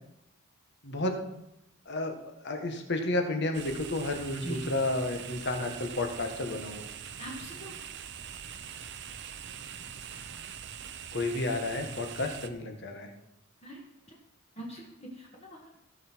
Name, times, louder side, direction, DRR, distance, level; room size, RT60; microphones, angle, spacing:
voice 1, 0.8-1.2 1.9-2.1 2.4-6.8 11.1-13.1, left 2 dB, 55° left, 4 dB, 1.5 m, -31 dB
sound 1, 3.5-12.5, right 8 dB, 55° right, 0.7 m, -43 dB
voice 2, 7.2-7.7 13.6-13.8 14.6-15.7, equal, 30° left, -3 dB, 1.7 m, -42 dB
16.5 x 6.3 x 4.5 m, 0.86 s
head